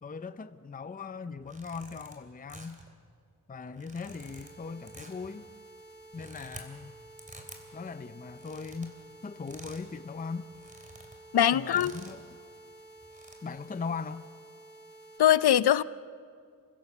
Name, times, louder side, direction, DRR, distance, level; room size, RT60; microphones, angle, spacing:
voice 1, 0.0-2.8 3.5-5.5 6.1-6.9 7.7-8.9 9.2-10.5 11.5-12.4 13.4-14.3, left 5 dB, 20° left, 0.5 m, -39 dB
sound 1, 1.4-2.1 2.5-2.9 3.7-4.5 4.9-5.3 6.0-6.6 7.2-7.6 8.3-8.9 9.5-9.9 10.2-10.3 10.5-11.2 11.7-12.2 13.0-13.3, right 1 dB, 20° right, 3.1 m, -49 dB
sound 2, 4.0-15.2, right 2 dB, 60° left, 6.5 m, -52 dB
voice 2, 11.3-11.9 15.2-15.8, left 10 dB, 80° left, 0.6 m, -22 dB
30.0 x 16.5 x 7.1 m
wide cardioid pair, 130°, 38 cm